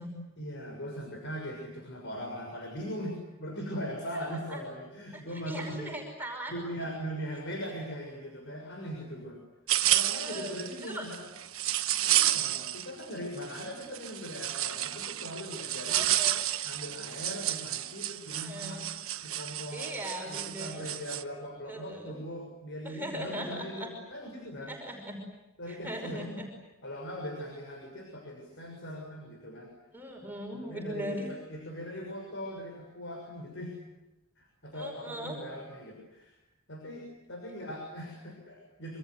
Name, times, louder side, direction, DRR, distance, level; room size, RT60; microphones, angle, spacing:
voice 1, 0.4-6.0 6.5-9.4 9.9-11.2 12.1-16.1 16.6-18.8 19.2-19.9 20.2-24.8 25.6-26.3 26.8-29.7 30.6-33.7 34.4-36.3 36.7-39.0, equal, 60° left, 2 dB, 6.5 m, -40 dB
voice 2, 4.2-4.6 5.1-6.5 10.2-11.1 12.2-12.5 15.9-16.4 18.4-18.8 19.7-20.9 21.7-22.2 22.8-23.9 24.7-25.2 25.7-26.5 29.9-31.4 34.7-35.4, equal, 10° right, 1 dB, 5.5 m, -39 dB
sound 1, 9.7-13.0 13.4-21.2, right 13 dB, 70° right, 1.2 m, -31 dB
27.0 x 26.0 x 8.0 m, 0.99 s
head